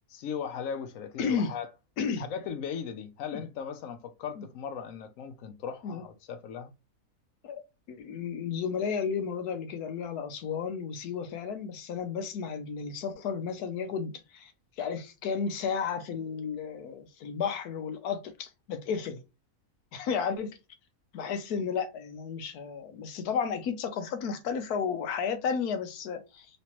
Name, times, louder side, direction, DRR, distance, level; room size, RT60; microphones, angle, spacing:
voice 1, 0.1-1.7 2.2-6.7, left 7 dB, 70° left, 0.9 m, -38 dB
voice 2, 1.2-1.5 2.0-2.2 3.3-3.4 4.4-4.5 5.8-6.0 7.4-7.6 7.9-14.5 14.8-19.2 19.9-20.5 21.1-26.5, left 6 dB, 90° left, 1.2 m, -33 dB
3.2 x 3.1 x 2.9 m
omnidirectional pair, 1.6 m